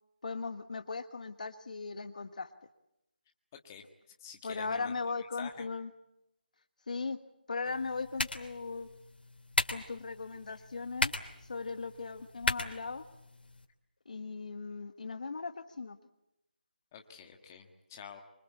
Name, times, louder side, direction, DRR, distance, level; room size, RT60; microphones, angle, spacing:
voice 1, 0.2-2.5 4.4-5.9 6.9-7.2 7.5-8.9 9.7-11.1 11.4-13.0 14.0-16.0, left 4 dB, 50° left, 10 dB, 1.4 m, -38 dB
voice 2, 4.2-4.9 5.4-5.7 16.9-18.2, left 7 dB, 15° left, 3 dB, 1.7 m, -48 dB
sound 1, 7.7-13.7, left 2 dB, 70° left, 3.1 m, -37 dB
25.0 x 24.5 x 8.4 m, 0.88 s
figure-of-eight pair, 170°, 5 cm